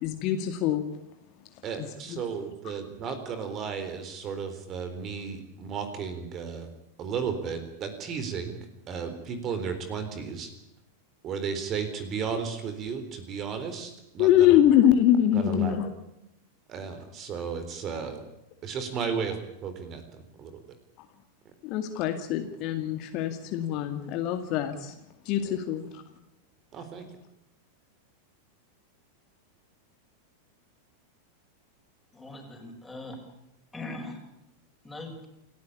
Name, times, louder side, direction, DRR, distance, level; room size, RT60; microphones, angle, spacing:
voice 1, 0.0-0.8 1.8-2.2 14.2-15.9 21.6-24.9 25.3-26.0, left 11 dB, 40° left, 7 dB, 2.2 m, -24 dB
voice 2, 1.6-6.7 7.0-8.6 8.9-10.5 11.2-14.6 15.3-15.8 16.7-18.2 18.6-20.5 25.4-25.6 26.7-27.1, right 6 dB, 30° right, 9 dB, 3.8 m, -34 dB
voice 3, 32.1-33.2 33.7-34.2 34.8-35.2, left 2 dB, 10° left, 2 dB, 7.0 m, -40 dB
29.0 x 14.5 x 8.6 m, 0.88 s
figure-of-eight pair, 90°, 0 cm